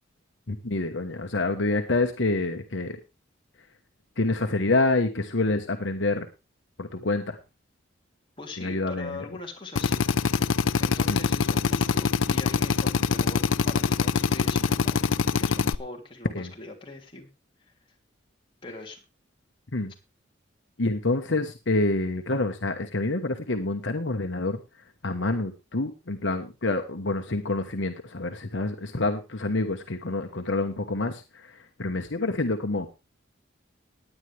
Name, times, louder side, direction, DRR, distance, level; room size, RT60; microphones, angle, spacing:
voice 1, 0.5-3.0 4.2-6.3 6.8-7.4 8.6-9.2 11.1-11.2 16.3-16.5 19.7-19.9 20.8-24.6 25.0-31.5 31.8-32.9, left 2 dB, 70° left, 5 dB, 1.2 m, -27 dB
voice 2, 8.4-10.0 10.3-10.5 10.8-17.3 17.7-17.8 18.6-19.0, left 3 dB, 25° left, 0 dB, 3.2 m, -41 dB
Drill, 9.8-15.8, left 5 dB, 85° left, 0.5 m, -24 dB
17.5 x 10.0 x 3.4 m, 0.28 s
head